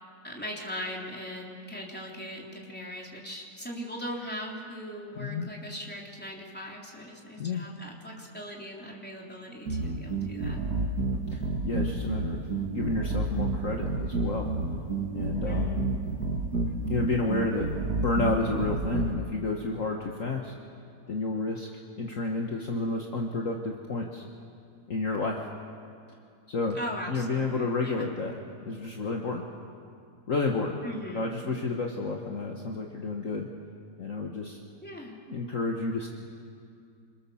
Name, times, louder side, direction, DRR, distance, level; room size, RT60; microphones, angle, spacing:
voice 1, 0.2-10.6 15.5-16.0 26.8-28.1 30.8-31.3 34.8-35.2, equal, 5° left, -2 dB, 3.6 m, -39 dB
voice 2, 5.1-5.5 7.4-7.6 11.3-12.4 12.7-14.5 15.1-15.8 16.9-17.7 18.0-20.5 21.1-21.7 22.0-24.2 24.9-25.4 26.5-26.8 27.1-28.3 28.6-29.4 30.3-30.8 31.1-33.5 34.0-34.6 35.3-36.1, left 3 dB, 50° left, 1 dB, 1.8 m, -30 dB
sound 1, 9.7-19.1, right 3 dB, 60° right, 2.3 m, -29 dB
27.0 x 25.0 x 7.1 m, 2.4 s
omnidirectional pair, 1.9 m